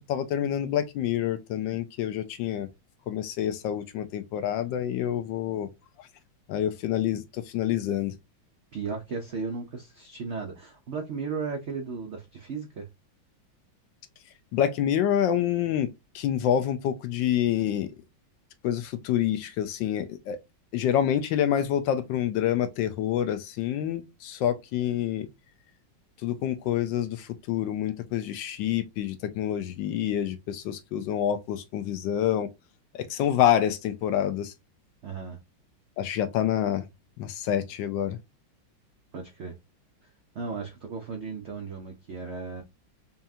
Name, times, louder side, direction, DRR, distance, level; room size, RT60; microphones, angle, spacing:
voice 1, 0.1-2.7 3.1-5.7 6.5-8.1 14.5-17.9 18.6-20.4 20.7-25.3 26.2-32.5 32.9-34.5 36.0-36.8 37.2-38.2, left 10 dB, 75° left, 1.2 m, -27 dB
voice 2, 8.7-12.9 35.0-35.4 39.1-39.6 40.3-42.6, right 5 dB, 80° right, 0.6 m, -35 dB
5.5 x 2.4 x 2.6 m
omnidirectional pair, 2.2 m